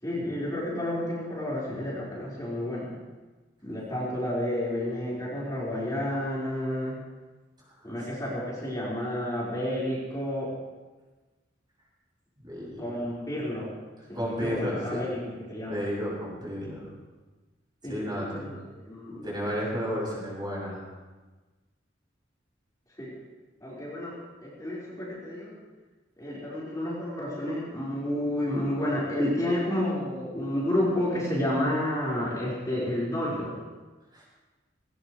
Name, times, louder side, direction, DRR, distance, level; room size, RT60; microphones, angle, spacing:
voice 1, 0.0-2.9 3.6-7.0 7.8-10.5 12.8-13.8 14.1-15.8 17.8-19.4 23.0-23.1 23.6-24.2 24.4-25.5 26.2-33.6, left 1 dB, 20° left, -8 dB, 4.7 m, -30 dB
voice 2, 12.5-12.8 14.1-15.0 15.7-16.8 17.8-18.5 19.2-20.8 34.1-34.3, equal, 25° right, -5 dB, 6.5 m, -32 dB
19.5 x 19.0 x 3.3 m, 1.2 s
head